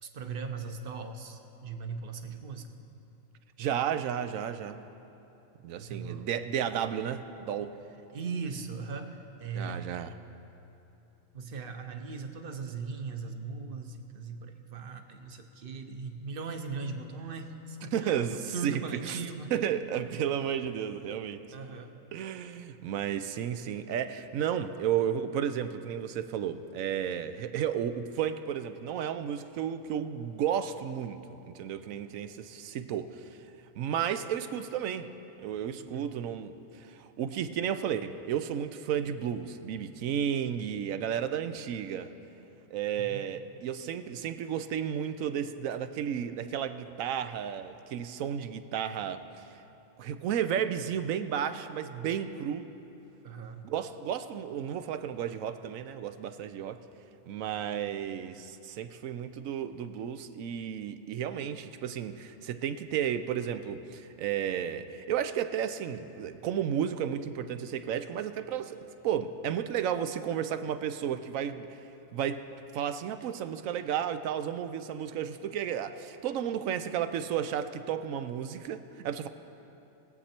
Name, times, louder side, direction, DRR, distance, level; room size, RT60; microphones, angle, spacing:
voice 1, 0.0-2.7 5.8-6.3 8.1-9.9 11.3-19.5 21.5-21.9 35.9-36.1 43.0-43.3 53.2-53.7, right 5 dB, 50° right, 6 dB, 0.9 m, -39 dB
voice 2, 3.6-4.8 5.6-7.7 9.5-10.2 17.9-19.2 19.5-21.4 22.1-31.2 31.5-33.3 33.7-35.1 35.4-42.1 42.7-49.6 50.0-52.7 53.6-56.8 57.3-68.8 69.0-71.8 72.1-72.4 72.7-79.3, right 9 dB, 80° right, 10 dB, 1.0 m, -33 dB
21.0 x 8.0 x 4.4 m, 3.0 s
omnidirectional pair, 1.4 m